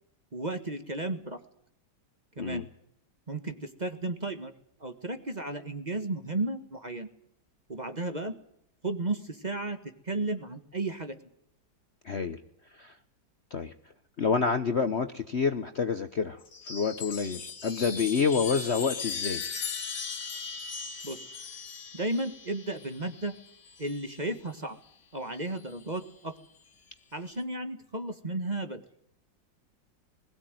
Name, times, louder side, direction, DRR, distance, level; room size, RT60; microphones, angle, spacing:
voice 1, 0.3-1.4 2.4-2.6 3.3-4.5 4.8-7.1 7.7-8.4 8.8-11.1 21.0-21.2 21.9-23.4 23.8-24.8 25.1-26.3 27.1-28.8, right 2 dB, 25° right, 8 dB, 1.5 m, -34 dB
voice 2, 12.1-12.4 12.8-12.9 13.5-13.7 14.2-16.4 16.7-19.4, left 5 dB, 45° left, 9 dB, 1.0 m, -28 dB
Chime, 16.4-24.2 25.5-26.1, left 5 dB, 70° left, 2.3 m, -38 dB
21.5 x 15.5 x 9.1 m, 0.78 s
omnidirectional pair, 2.0 m